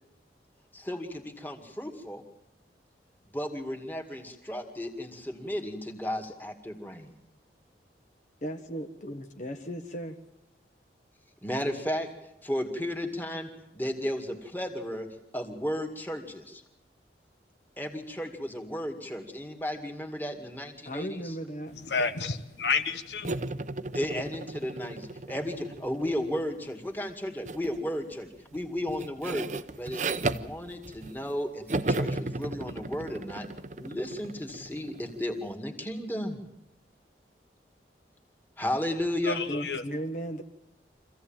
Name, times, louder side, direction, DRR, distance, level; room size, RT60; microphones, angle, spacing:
voice 1, 0.7-2.2 3.3-7.1 11.4-12.1 12.4-15.1 15.3-16.6 17.8-21.3 23.9-29.5 29.8-33.5 33.7-36.4 38.6-39.4, left 1 dB, 10° left, 4 dB, 2.2 m, -34 dB
voice 2, 8.4-10.2 20.8-21.8 39.5-40.4, equal, 45° left, 5 dB, 1.3 m, -36 dB
voice 3, 21.9-23.3 39.3-39.8, left 4 dB, 80° left, 8 dB, 1.2 m, -30 dB
sound 1, 23.2-26.5 27.4-27.8 28.1-31.3 31.7-35.2, right 2 dB, 45° right, 0.7 m, -35 dB
25.5 x 16.0 x 8.9 m, 0.88 s
head